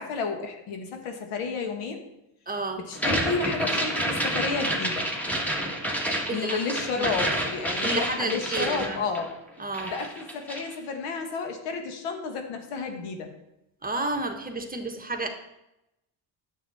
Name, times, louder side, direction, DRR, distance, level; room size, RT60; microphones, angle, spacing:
voice 1, 0.0-2.0 2.8-5.1 6.3-9.3 9.8-13.3, left 4 dB, 90° left, 5 dB, 1.6 m, -31 dB
voice 2, 2.5-2.8 6.0-6.6 7.0-7.1 7.8-9.0 9.6-10.0 13.8-15.3, right 2 dB, 20° right, 4 dB, 1.2 m, -31 dB
sound 1, 2.9-9.5 9.7-10.7, right 1 dB, 5° left, 1.5 m, -29 dB
9.3 x 7.4 x 4.1 m, 0.87 s
cardioid pair, 95°, 49 cm